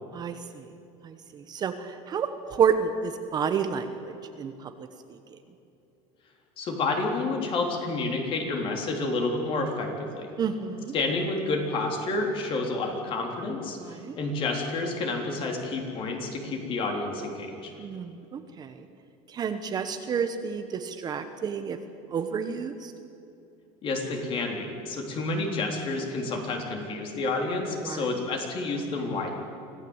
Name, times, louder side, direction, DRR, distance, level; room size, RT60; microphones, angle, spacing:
voice 1, 0.1-0.7 1.0-5.4 10.4-10.9 13.8-14.2 17.8-18.9 19.3-21.8 22.1-22.9 27.8-28.0, right 6 dB, 30° right, 8 dB, 1.1 m, -30 dB
voice 2, 6.6-10.3 10.9-13.8 14.2-17.7 23.8-29.3, left 3 dB, 40° left, 2 dB, 3.7 m, -29 dB
25.0 x 15.5 x 8.1 m, 2.7 s
cardioid pair, 150°, 14 cm